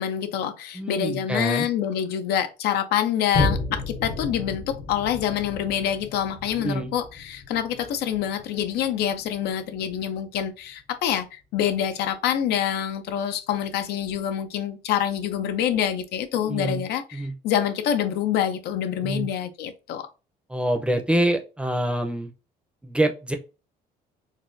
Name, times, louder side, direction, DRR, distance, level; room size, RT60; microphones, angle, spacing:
voice 1, 0.0-20.1, left 9 dB, 75° left, 0.5 m, -26 dB
voice 2, 0.7-1.7 6.5-6.9 16.4-16.8 17.1-17.3 19.0-19.3 20.5-22.3 22.8-23.3, right 1 dB, 5° right, 0.6 m, -25 dB
Boom, 3.3-10.3 10.8-10.9, left 3 dB, 55° left, 0.8 m, -32 dB
4.0 x 2.2 x 2.6 m
cardioid pair, 110°, 17 cm